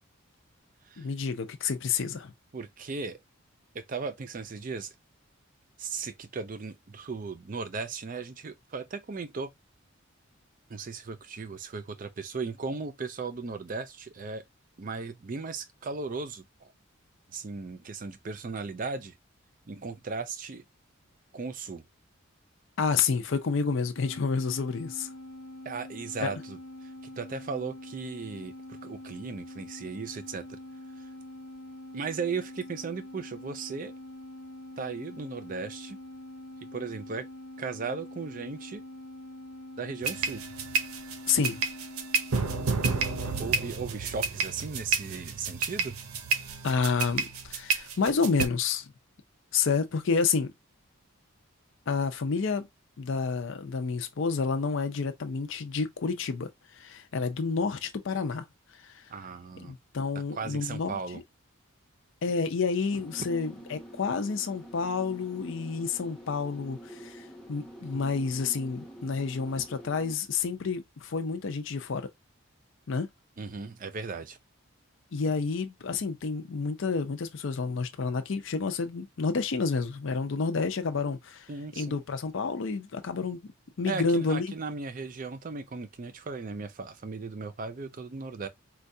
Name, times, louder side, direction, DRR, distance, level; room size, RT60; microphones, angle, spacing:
voice 1, 1.0-2.3 22.8-25.1 26.2-26.3 41.3-41.6 46.6-48.9 49.5-50.5 51.9-52.7 53.0-56.5 56.8-58.4 58.8-59.0 59.6-61.2 62.2-72.1 72.9-73.1 75.1-81.5 81.8-83.5 83.8-84.5, left 5 dB, 60° left, 0.5 m, -29 dB
voice 2, 2.5-3.2 3.7-4.9 5.8-9.5 10.7-14.4 14.8-16.7 17.3-19.2 19.7-20.6 21.3-21.8 25.6-30.6 31.0-31.1 31.9-33.9 34.8-36.0 36.6-37.3 37.6-38.8 39.8-40.4 43.2-46.0 59.1-59.7 60.3-61.2 73.4-74.4 81.5-82.0 83.8-88.5, right 4 dB, 40° right, 0.4 m, -37 dB
sound 1, 24.0-43.5, left 1 dB, 80° left, 0.8 m, -45 dB
sound 2, 40.0-48.4, right 4 dB, 85° right, 0.7 m, -30 dB
sound 3, 62.9-70.2, right 1 dB, 5° left, 0.7 m, -47 dB
4.4 x 2.3 x 2.6 m
head